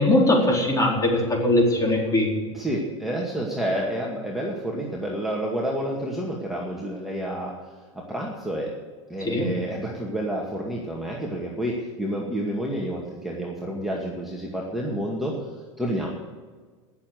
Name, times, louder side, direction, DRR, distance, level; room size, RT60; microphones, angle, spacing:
voice 1, 0.0-2.3 9.3-9.5, left 1 dB, 20° left, -1 dB, 4.1 m, -20 dB
voice 2, 2.5-7.5 7.9-8.7 9.1-15.4 15.8-16.1, right 1 dB, ahead, -3 dB, 2.1 m, -29 dB
18.0 x 7.2 x 6.7 m, 1.5 s
hypercardioid pair, 105°, 16 cm